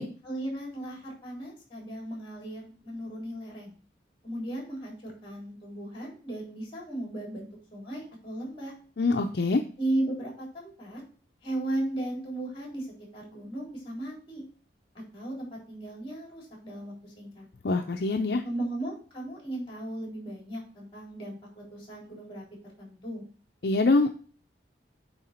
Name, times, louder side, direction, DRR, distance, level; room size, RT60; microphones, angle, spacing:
voice 1, 0.2-3.7 4.2-8.7 9.8-11.0 11.4-12.9 13.1-14.4 15.1-17.5 18.4-22.4 22.8-23.2, right 1 dB, 30° left, -1 dB, 3.7 m, -36 dB
voice 2, 9.0-9.6 17.6-18.4 23.6-24.1, left 3 dB, 60° left, 5 dB, 0.5 m, -24 dB
8.9 x 3.9 x 4.3 m, 0.41 s
head